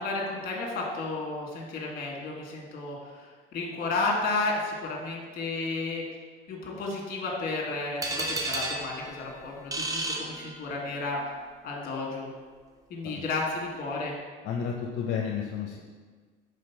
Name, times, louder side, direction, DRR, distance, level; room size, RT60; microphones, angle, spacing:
voice 1, 0.0-3.0 3.5-6.0 6.5-11.2 11.6-12.3 12.9-14.1, left 3 dB, 45° left, -1 dB, 1.6 m, -32 dB
sound 1, 8.0-11.0, right 2 dB, 15° right, 0.6 m, -33 dB
voice 2, 14.4-15.8, left 7 dB, 65° left, 0 dB, 0.7 m, -31 dB
5.0 x 3.7 x 5.7 m, 1.5 s
cardioid pair, 130°, 21 cm